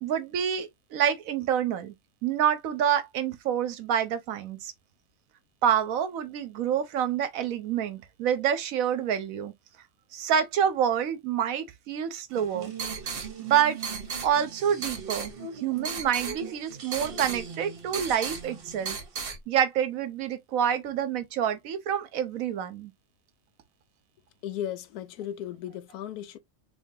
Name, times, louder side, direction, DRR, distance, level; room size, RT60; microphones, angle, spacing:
voice 1, 0.0-1.9 2.2-4.7 5.6-9.5 10.1-12.7 13.4-13.8 14.2-19.0 19.3-22.9, right 9 dB, 70° right, 1.0 m, -27 dB
sound 1, 12.3-19.4, right 5 dB, 45° right, 1.0 m, -36 dB
voice 2, 24.4-26.4, left 10 dB, 85° left, 1.1 m, -36 dB
3.7 x 2.9 x 2.7 m
omnidirectional pair, 1.6 m